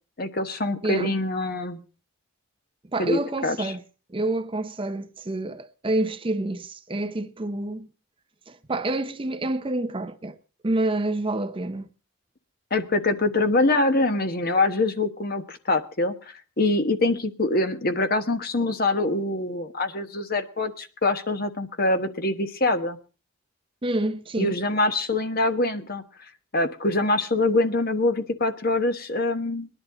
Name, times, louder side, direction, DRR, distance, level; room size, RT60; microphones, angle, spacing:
voice 1, 0.2-1.8 3.0-3.7 12.7-23.0 24.4-26.0 26.5-29.7, left 2 dB, 45° left, 1.2 m, -24 dB
voice 2, 0.8-1.1 2.9-3.8 4.1-7.9 8.5-10.4 10.6-11.9 23.8-24.6, right 2 dB, 25° right, 0.6 m, -28 dB
20.5 x 11.0 x 3.8 m
head